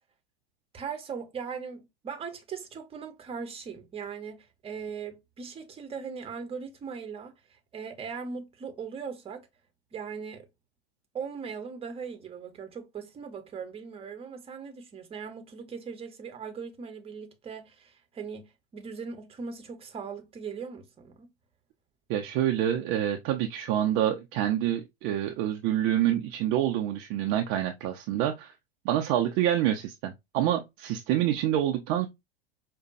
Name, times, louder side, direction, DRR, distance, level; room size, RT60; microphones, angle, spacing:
voice 1, 0.7-9.5 9.9-10.5 11.1-21.3, right 6 dB, 20° right, 0.9 m, -39 dB
voice 2, 22.1-28.5 28.8-32.1, right 11 dB, 40° right, 0.5 m, -27 dB
5.0 x 2.2 x 2.5 m
figure-of-eight pair, 95°, 31 cm